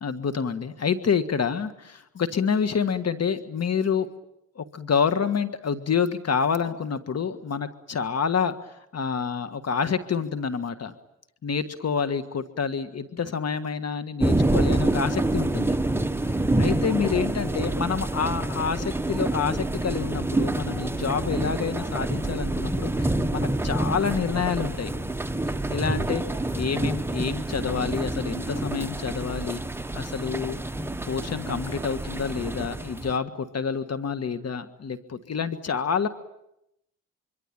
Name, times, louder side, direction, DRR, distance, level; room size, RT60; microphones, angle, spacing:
voice 1, 0.0-4.1 4.5-8.5 8.9-10.9 11.4-15.8 16.6-24.9 25.7-26.2 26.5-29.6 29.9-30.6 31.0-36.1, left 6 dB, 50° left, 10 dB, 1.7 m, -28 dB
sound 1, 14.2-33.2, right 2 dB, 5° right, 1.2 m, -27 dB
26.0 x 24.5 x 8.9 m, 0.82 s
cardioid pair, 75°, 33 cm